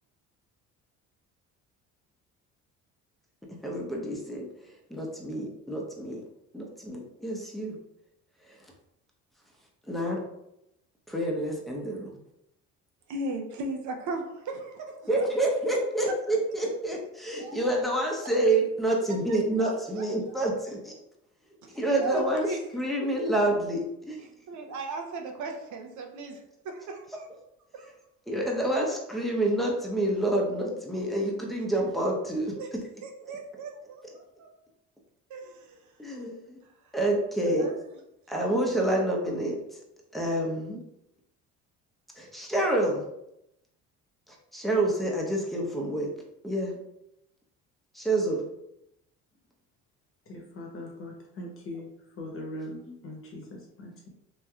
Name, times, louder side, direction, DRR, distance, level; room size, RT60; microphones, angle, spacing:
voice 1, 3.6-6.2 6.5-7.8 8.5-8.6 9.9-10.2 11.1-12.1 15.1-20.9 21.7-24.2 28.3-32.5 36.0-36.6 36.9-37.7 38.3-39.6 40.1-40.8 42.2-43.1 44.3-46.1 46.4-46.8 47.9-48.5, right 1 dB, ahead, -2 dB, 0.7 m, -28 dB
voice 2, 13.1-15.1 17.3-17.6 19.3-19.7 19.9-20.1 21.6-22.7 24.5-27.3 27.7-27.9 32.4-32.7 33.0-34.0 34.4-34.5 35.3-35.9 36.8-36.9 37.6-37.8 38.5-38.6, right 2 dB, 65° right, 3 dB, 0.6 m, -37 dB
voice 3, 50.3-51.9 52.1-54.1, left 1 dB, 40° left, 0 dB, 0.9 m, -41 dB
3.1 x 2.7 x 2.3 m, 0.83 s
supercardioid pair, 85°, 32 cm